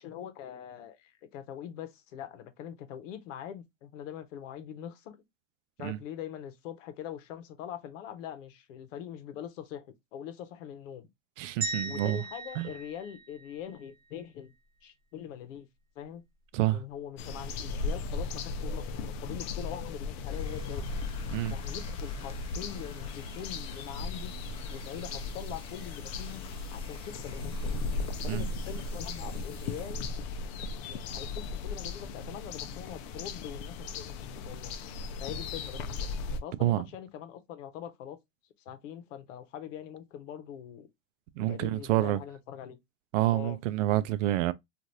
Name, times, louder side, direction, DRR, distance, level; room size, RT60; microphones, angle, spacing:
voice 1, 0.0-5.2 5.8-11.1 11.8-14.5 14.8-15.7 16.0-16.2 16.7-20.9 21.5-24.3 24.7-26.4 26.7-27.7 28.2-30.1 30.9-34.7 35.2-36.1 36.4-38.2 38.6-40.9 41.4-42.8 43.3-43.6, left 9 dB, 70° left, 0.9 m, -43 dB
voice 2, 11.4-12.2 12.6-12.7 16.5-16.8 21.3-21.5 28.3-28.5 36.6-36.8 41.4-42.2 43.1-44.5, right 15 dB, 70° right, 0.5 m, -28 dB
sound 1, 11.6-13.9, right 3 dB, 25° right, 1.1 m, -38 dB
sound 2, 17.2-36.4, left 3 dB, 50° left, 0.6 m, -36 dB
sound 3, 20.2-30.4, left 3 dB, 15° left, 1.3 m, -53 dB
3.1 x 2.5 x 2.5 m
supercardioid pair, 135°, 39 cm